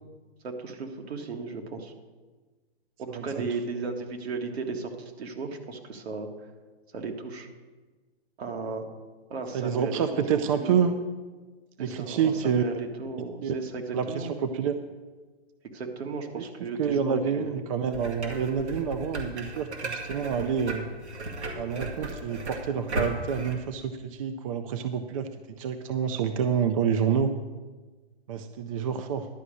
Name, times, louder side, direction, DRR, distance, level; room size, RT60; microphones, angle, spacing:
voice 1, 0.4-1.9 3.0-6.3 6.9-7.5 8.4-8.9 9.3-10.8 11.8-14.3 15.7-17.6, right 4 dB, 70° right, 3 dB, 1.8 m, -35 dB
voice 2, 9.5-10.9 11.8-12.6 13.4-13.5 13.9-14.8 16.3-16.5 16.8-20.9 21.6-27.3 28.3-29.3, right 7 dB, 35° right, 9 dB, 0.5 m, -28 dB
sound 1, 17.9-23.5, right 2 dB, 90° right, 2.2 m, -36 dB
11.5 x 5.1 x 8.2 m, 1.3 s
hypercardioid pair, 145°, 32 cm